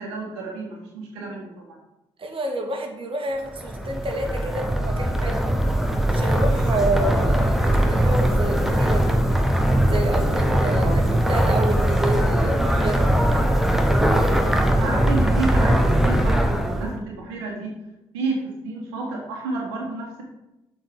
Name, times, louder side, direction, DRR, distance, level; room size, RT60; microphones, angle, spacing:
voice 1, 0.0-1.8 10.7-11.1 13.3-13.4 14.3-14.4 14.8-17.7 18.1-20.2, right 3 dB, 85° right, -1 dB, 1.5 m, -30 dB
voice 2, 2.2-5.4 6.1-9.2 9.9-13.0, right 1 dB, 40° right, 2 dB, 1.9 m, -29 dB
sound 1, 3.5-17.0, right 1 dB, ahead, 1.3 m, -20 dB
7.6 x 4.5 x 6.8 m, 0.96 s
hypercardioid pair, 45°, 13 cm